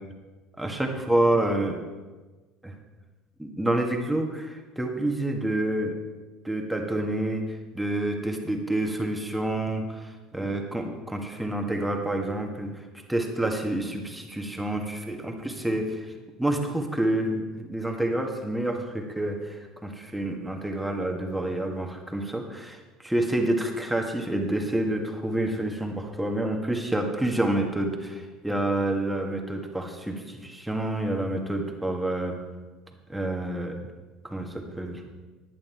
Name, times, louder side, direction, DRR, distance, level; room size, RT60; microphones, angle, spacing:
voice 1, 0.6-1.8 2.6-2.7 3.4-5.9 6.4-16.1 16.4-32.4 33.1-33.8 34.2-35.0, right 1 dB, 5° right, 2 dB, 1.6 m, -28 dB
10.5 x 9.2 x 4.4 m, 1.3 s
hypercardioid pair, 65°, 0 cm